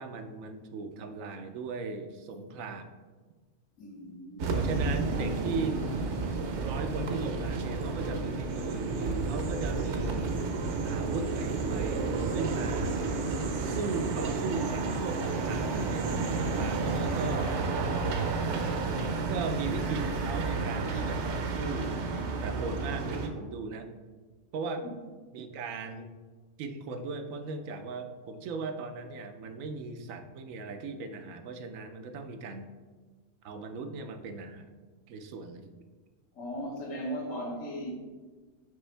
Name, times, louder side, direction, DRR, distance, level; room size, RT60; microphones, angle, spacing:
voice 1, 0.0-2.9 4.6-5.8 6.6-10.4 10.8-12.9 13.6-17.6 19.3-21.9 22.4-23.9 24.5-24.8 25.3-26.1 26.6-32.7 33.4-34.7 35.1-35.7, right 4 dB, 90° right, 7 dB, 1.0 m, -38 dB
voice 2, 3.8-4.5 24.8-24.9 36.3-37.9, equal, 75° left, -1 dB, 1.6 m, -37 dB
sound 1, 4.4-23.3, right 3 dB, 65° right, 0.9 m, -31 dB
sound 2, 9.9-17.6, right 5 dB, 55° left, 0.9 m, -46 dB
5.9 x 5.3 x 3.3 m, 1.4 s
omnidirectional pair, 1.4 m